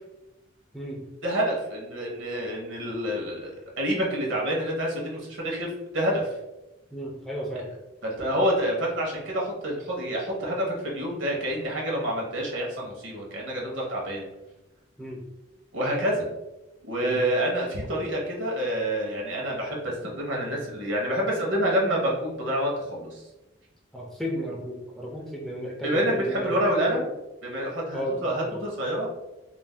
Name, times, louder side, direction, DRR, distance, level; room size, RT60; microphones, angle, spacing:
voice 1, 1.2-5.7 5.9-6.4 8.0-14.3 15.7-16.2 16.8-23.2 25.8-27.0 27.4-29.2, equal, 75° right, -2 dB, 0.9 m, -27 dB
voice 2, 6.9-7.7 15.0-15.2 17.0-17.2 23.9-26.5 26.9-27.0 27.9-28.6, equal, ahead, -3 dB, 0.3 m, -34 dB
2.5 x 2.1 x 3.2 m, 0.99 s
head